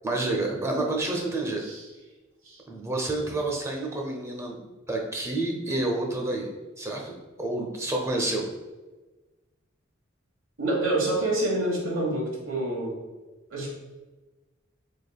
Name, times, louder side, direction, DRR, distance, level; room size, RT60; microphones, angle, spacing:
voice 1, 0.0-1.6 2.7-4.6 4.9-6.5 6.8-8.5, right 2 dB, 15° right, 1 dB, 0.6 m, -29 dB
voice 2, 10.6-13.0 13.5-13.7, right 1 dB, 85° right, -2 dB, 1.3 m, -27 dB
4.3 x 3.5 x 2.3 m, 1.2 s
head